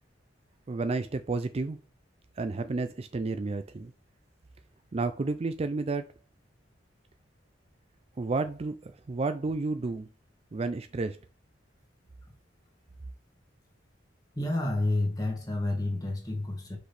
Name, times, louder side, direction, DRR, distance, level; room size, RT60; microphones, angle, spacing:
voice 1, 0.7-1.8 2.4-3.9 4.9-6.0 8.2-10.1 10.5-11.2, right 3 dB, 30° right, 0.4 m, -31 dB
voice 2, 14.4-16.8, left 2 dB, 20° left, 1.8 m, -29 dB
6.1 x 5.1 x 3.3 m
head